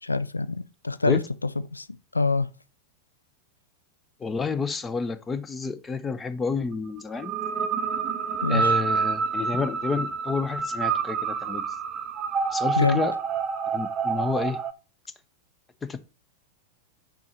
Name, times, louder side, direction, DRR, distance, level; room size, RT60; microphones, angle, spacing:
voice 1, 0.0-1.2 1.7-1.9 2.1-2.5 8.4-8.7 12.8-13.0, left 3 dB, 80° left, 0.4 m, -25 dB
voice 2, 4.2-7.3 8.5-11.7 12.5-13.1 13.7-14.6 15.8-16.0, left 4 dB, 15° left, 0.6 m, -29 dB
sound 1, 7.2-14.7, right 5 dB, 30° right, 0.6 m, -28 dB
6.0 x 5.1 x 4.3 m
figure-of-eight pair, 90°, 0 cm